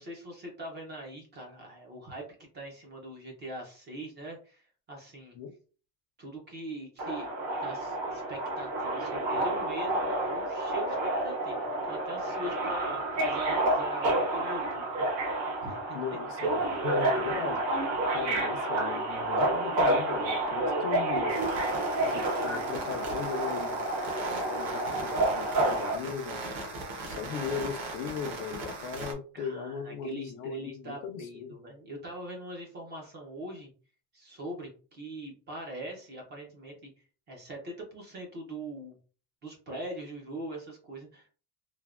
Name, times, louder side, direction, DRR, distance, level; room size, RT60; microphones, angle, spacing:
voice 1, 0.0-2.3 2.5-5.4 6.2-7.3 7.6-15.1 15.6-15.8 29.3-33.7 34.1-36.9 37.3-39.0 39.4-41.3, right 1 dB, 20° right, 0.4 m, -42 dB
Subway metro underground, 7.0-25.9, right 2 dB, 85° right, 1.2 m, -29 dB
voice 2, 15.9-17.6 18.1-21.3 22.0-23.8 24.4-26.4 27.0-31.5, left 6 dB, 70° left, 0.6 m, -37 dB
sound 1, 21.3-29.1, right 2 dB, 50° right, 1.0 m, -39 dB
3.3 x 2.1 x 2.3 m
cardioid pair, 160°, 50 cm